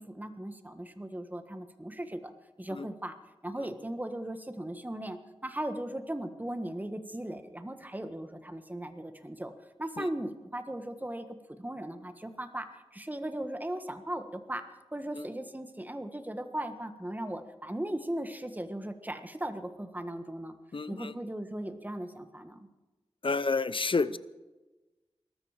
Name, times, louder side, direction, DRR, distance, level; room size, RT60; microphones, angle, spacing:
voice 1, 0.0-2.3 2.6-3.2 3.4-9.5 9.8-14.6 14.9-20.5 20.9-22.7, right 1 dB, 15° right, 8 dB, 1.4 m, -38 dB
voice 2, 20.7-21.1 23.2-24.2, left 4 dB, 55° left, 16 dB, 0.7 m, -30 dB
21.0 x 13.0 x 5.0 m, 1.1 s
wide cardioid pair, 70°, 10 cm